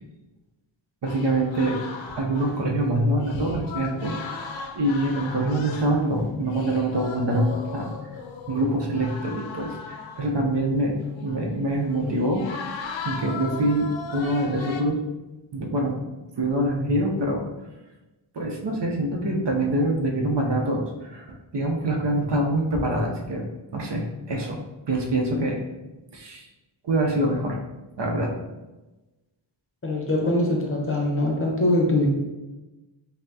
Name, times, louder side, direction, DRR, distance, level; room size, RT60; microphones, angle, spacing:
voice 1, 1.0-1.8 2.2-4.2 4.8-7.9 8.5-12.4 12.7-15.0 15.5-16.0 16.4-17.5 18.3-21.3 21.5-23.5 23.7-24.6 24.9-25.6 26.1-26.5 26.8-27.6 28.0-28.3, right 1 dB, 60° right, 0 dB, 0.7 m, -25 dB
sound 1, 1.1-10.7 11.0-14.8, left 5 dB, 70° left, 0.5 m, -37 dB
voice 2, 29.8-32.1, left 1 dB, 30° left, -1 dB, 0.7 m, -23 dB
5.4 x 2.1 x 2.7 m, 1.1 s
wide cardioid pair, 130°, 48 cm